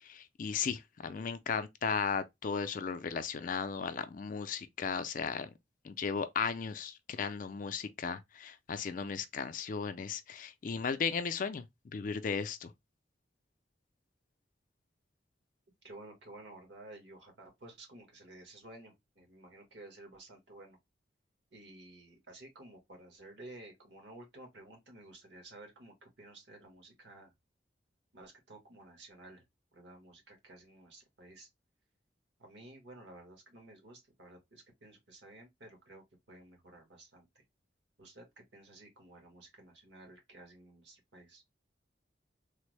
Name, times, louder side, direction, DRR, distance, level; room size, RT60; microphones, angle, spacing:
voice 1, 0.0-5.5 5.8-12.7, left 6 dB, 45° left, 0.4 m, -36 dB
voice 2, 15.8-20.8 21.5-27.3 28.1-29.4 29.7-31.5 32.4-37.4 38.0-41.4, right 2 dB, 70° right, 1.4 m, -53 dB
3.4 x 2.1 x 3.1 m
head